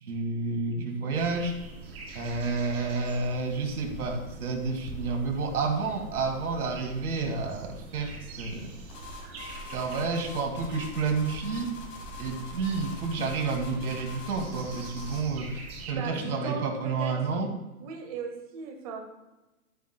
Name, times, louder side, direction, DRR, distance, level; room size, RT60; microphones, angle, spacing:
voice 1, 0.0-1.5 2.1-8.7 9.7-11.7 12.2-17.5, right 4 dB, 85° right, 3 dB, 2.3 m, -30 dB
sound 1, 1.1-15.9, right 2 dB, 45° right, 2.0 m, -44 dB
sound 2, 8.9-15.3, left 4 dB, 15° left, 1.2 m, -45 dB
voice 2, 15.9-17.1 17.8-19.0, right 5 dB, 25° right, 2 dB, 0.8 m, -37 dB
12.0 x 9.2 x 2.2 m, 1.0 s
hypercardioid pair, 175°, 43 cm